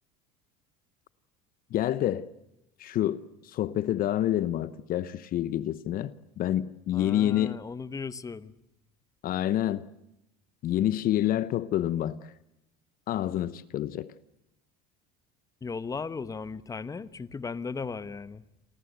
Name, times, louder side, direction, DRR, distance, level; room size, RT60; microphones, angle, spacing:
voice 1, 1.7-2.3 2.8-7.6 9.2-9.8 10.6-12.3 13.1-14.1, left 12 dB, 45° left, 16 dB, 1.0 m, -28 dB
voice 2, 6.9-8.5 15.6-18.4, left 5 dB, 15° left, 15 dB, 1.1 m, -36 dB
29.5 x 23.0 x 8.1 m, 0.86 s
cardioid pair, 130°, 20 cm